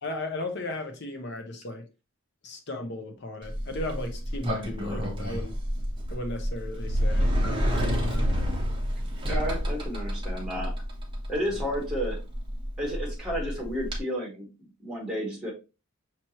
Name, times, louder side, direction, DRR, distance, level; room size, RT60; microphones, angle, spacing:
voice 1, 0.0-1.9 2.4-5.6 6.1-8.3 11.4-11.6, left 2 dB, 50° left, 0.8 m, -36 dB
Sliding door, 3.4-14.0, equal, 20° right, 0.9 m, -29 dB
voice 2, 9.3-10.7 11.3-12.2 12.8-14.5 14.8-15.5, equal, 5° right, 1.6 m, -31 dB
5.9 x 3.0 x 2.9 m
head